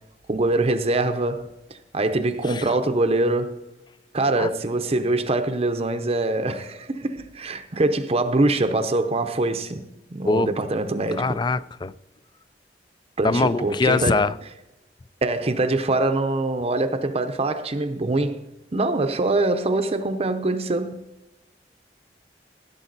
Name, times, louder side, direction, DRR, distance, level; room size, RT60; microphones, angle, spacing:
voice 1, 0.3-1.5 1.9-3.6 4.1-11.4 13.2-14.2 15.2-18.4 18.7-21.0, right 2 dB, 35° right, 0.7 m, -23 dB
voice 2, 11.2-11.9 13.2-14.4, left 3 dB, 25° left, 0.3 m, -22 dB
15.5 x 7.0 x 4.0 m
head